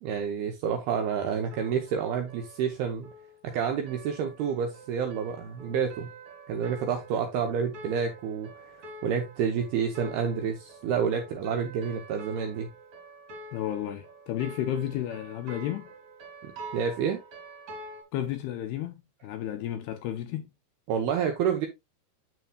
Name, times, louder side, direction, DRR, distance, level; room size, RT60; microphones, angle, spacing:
voice 1, 0.0-3.1 3.4-6.1 6.5-8.8 9.0-12.7 16.7-17.2 20.9-21.7, right 7 dB, 75° right, 2.4 m, -29 dB
sound 1, 1.5-18.0, right 1 dB, 45° right, 3.5 m, -47 dB
voice 2, 13.5-15.9 18.1-20.5, left 11 dB, 80° left, 2.4 m, -32 dB
9.2 x 6.8 x 2.2 m
omnidirectional pair, 5.2 m